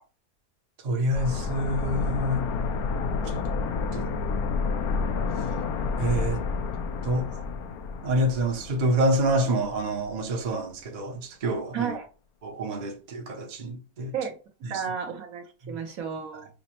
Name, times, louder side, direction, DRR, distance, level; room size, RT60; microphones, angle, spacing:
voice 1, 0.8-2.5 3.2-3.4 3.9-4.1 6.0-6.4 7.0-7.4 8.0-11.9 12.4-14.1 14.6-14.8 15.6-15.7, right 1 dB, 40° right, 0.7 m, -27 dB
sound 1, 1.1-9.8 10.1-10.2, left 4 dB, 70° left, 1.0 m, -30 dB
voice 2, 11.7-12.1 14.1-14.4 14.7-16.5, right 7 dB, 65° right, 1.1 m, -32 dB
5.0 x 2.1 x 2.9 m
omnidirectional pair, 1.7 m